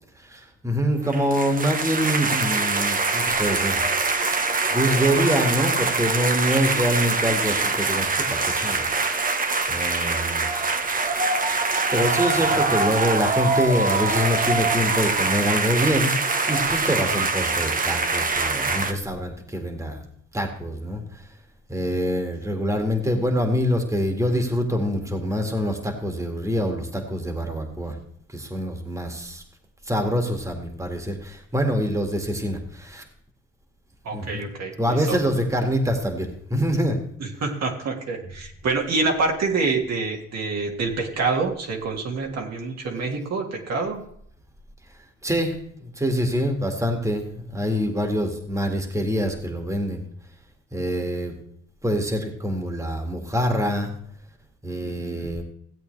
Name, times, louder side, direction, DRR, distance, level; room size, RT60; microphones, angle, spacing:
voice 1, 0.2-3.8 4.3-8.8 9.7-10.5 10.8-10.9 11.9-16.1 16.5-20.0 20.3-21.3 21.7-28.0 28.3-29.4 29.8-33.0 34.1-34.4 34.8-37.0 45.2-50.1 50.7-51.3 51.8-53.9 54.6-55.4, equal, 10° right, 3 dB, 2.0 m, -25 dB
sound 1, 1.0-18.9, right 3 dB, 30° right, 1.0 m, -24 dB
voice 2, 34.0-35.2 37.4-44.0 54.8-55.3, right 3 dB, 60° right, 1 dB, 2.0 m, -27 dB
16.0 x 8.1 x 3.3 m, 0.65 s
cardioid pair, 90°, 30 cm